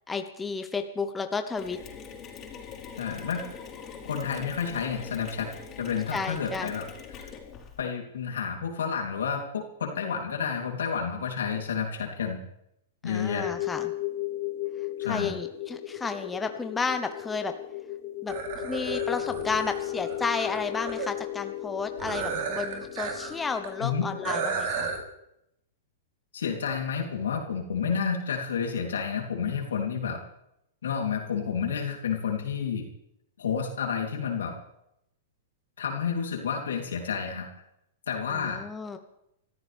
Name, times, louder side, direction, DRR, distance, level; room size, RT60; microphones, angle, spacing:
voice 1, 0.1-1.8 6.1-6.7 13.0-13.9 15.1-17.5 18.2-24.9 38.3-39.0, left 4 dB, 15° left, 7 dB, 1.1 m, -32 dB
Mechanisms, 1.6-7.8, left 6 dB, 30° left, 4.5 m, -43 dB
voice 2, 3.0-3.4 4.0-5.5 5.8-6.8 7.1-7.2 7.8-12.4 13.0-13.5 15.0-15.4 23.8-24.0 26.3-30.2 30.8-32.9 33.4-34.6 35.8-37.5 38.1-38.6, left 6 dB, 80° left, 2 dB, 3.4 m, -30 dB
sound 1, 13.4-24.4, left 15 dB, 50° left, 4.1 m, -35 dB
sound 2, 18.3-21.1 22.0-23.3 23.6-23.7 24.2-25.0, right 6 dB, 60° right, 3.6 m, -33 dB
25.5 x 14.0 x 3.6 m, 0.81 s
hypercardioid pair, 115°, 0 cm